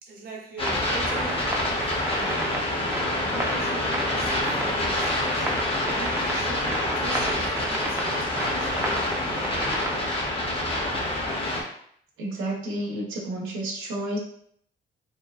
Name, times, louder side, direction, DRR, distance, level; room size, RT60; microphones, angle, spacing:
voice 1, 0.0-2.7 3.3-5.5 6.0-9.7, right 4 dB, 50° right, -3 dB, 0.7 m, -41 dB
sound 1, 0.6-11.6, left 1 dB, 30° left, 0.6 m, -27 dB
sound 2, 0.6-10.3, right 1 dB, 10° right, 0.5 m, -33 dB
voice 2, 12.2-14.2, right 1 dB, 90° right, -3 dB, 0.7 m, -30 dB
2.8 x 2.2 x 2.3 m, 0.65 s
cardioid pair, 90°, 20 cm